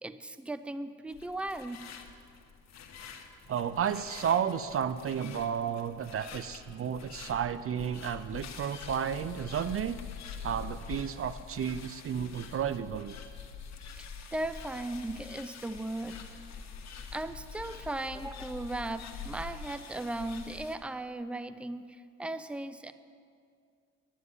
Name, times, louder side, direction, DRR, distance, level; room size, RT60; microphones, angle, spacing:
voice 1, 0.0-1.8 14.0-16.2 17.1-22.9, right 2 dB, 5° right, 12 dB, 0.6 m, -37 dB
sound 1, 1.1-20.8, left 6 dB, 60° left, 1.6 m, -45 dB
voice 2, 3.5-10.0 10.4-13.2, right 8 dB, 45° right, 14 dB, 0.5 m, -32 dB
11.0 x 10.0 x 9.5 m, 2.3 s
cardioid pair, 90°, 30 cm